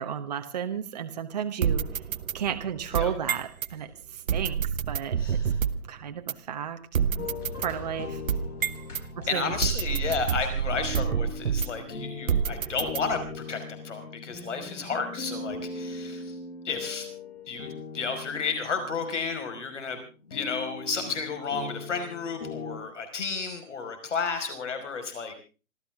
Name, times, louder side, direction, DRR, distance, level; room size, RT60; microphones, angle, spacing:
voice 1, 0.0-1.9 2.3-5.4 5.9-6.8 7.1-7.3 7.6-8.2 9.2-9.6, right 8 dB, 30° right, 6 dB, 1.1 m, -33 dB
sound 1, 1.6-3.7 4.3-5.9 6.3-6.4 6.9-9.0 9.6-11.9 12.3-13.4, right 7 dB, 70° right, 1.0 m, -28 dB
sound 2, 7.2-19.8 20.3-22.8, left 3 dB, 85° left, 7.8 m, -40 dB
voice 2, 9.3-16.2 16.7-17.1 17.5-17.7 17.9-20.0 20.3-25.4, left 5 dB, 55° left, 7 dB, 5.5 m, -32 dB
26.5 x 13.5 x 3.7 m, 0.34 s
hypercardioid pair, 175°, 43 cm